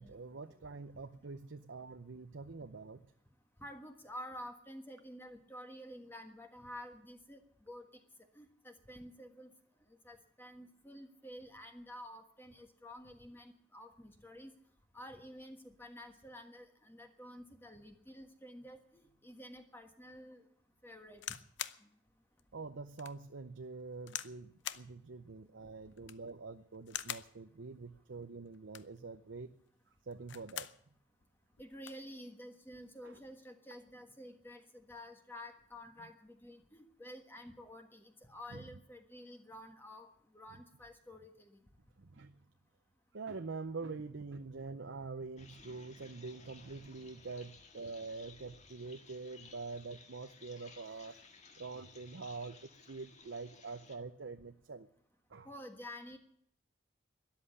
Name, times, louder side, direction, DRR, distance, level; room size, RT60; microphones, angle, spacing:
voice 1, 0.0-3.1 22.5-29.5 30.1-30.7 33.0-33.2 38.5-38.7 42.0-42.4 43.1-51.3 51.6-54.9 55.3-55.5, right 4 dB, 75° right, 9 dB, 0.7 m, -45 dB
voice 2, 3.6-7.9 8.3-9.5 10.0-14.5 14.9-20.4 20.8-21.4 31.6-40.1 40.3-41.6 55.4-56.2, equal, 10° left, 5 dB, 1.4 m, -50 dB
sound 1, 21.1-21.8 22.4-22.5 23.0-23.2 24.1-24.4 24.6-24.9 25.9-26.3 26.9-27.3 28.5-29.0 30.1-30.8 31.2-31.3 31.5-32.0 32.9-33.1, left 11 dB, 70° left, 0.7 m, -43 dB
sound 2, 45.4-54.0, left 4 dB, 35° left, 1.8 m, -58 dB
13.0 x 11.0 x 9.6 m, 0.68 s
head